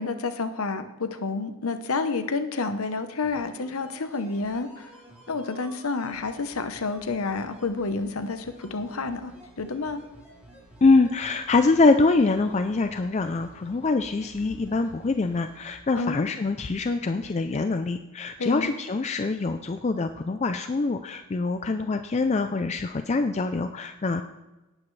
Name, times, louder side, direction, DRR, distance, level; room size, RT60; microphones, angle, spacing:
voice 1, 0.0-4.9 5.3-10.0 16.0-16.3 18.4-18.7, left 3 dB, 75° left, 9 dB, 0.9 m, -29 dB
sound 1, 3.2-15.8 16.0-16.1, right 1 dB, 10° right, 3.5 m, -51 dB
voice 2, 10.8-24.2, left 3 dB, 30° left, 8 dB, 0.4 m, -24 dB
18.0 x 8.6 x 3.2 m, 1.1 s
head